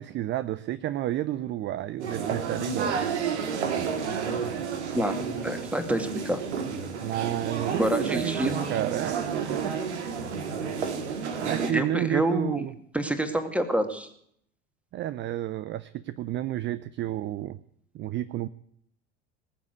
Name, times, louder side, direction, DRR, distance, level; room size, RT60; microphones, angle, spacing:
voice 1, 0.0-3.1 7.0-9.8 11.4-12.7 14.9-17.6 17.9-18.5, right 13 dB, 30° right, 15 dB, 0.6 m, -31 dB
sound 1, 2.0-11.7, right 6 dB, 70° right, 2.2 m, -31 dB
voice 2, 5.4-6.4 7.8-8.6 11.4-12.7 12.9-14.1, right 1 dB, 5° right, 8 dB, 2.2 m, -27 dB
20.0 x 7.3 x 9.5 m, 0.68 s
figure-of-eight pair, 70°, 36 cm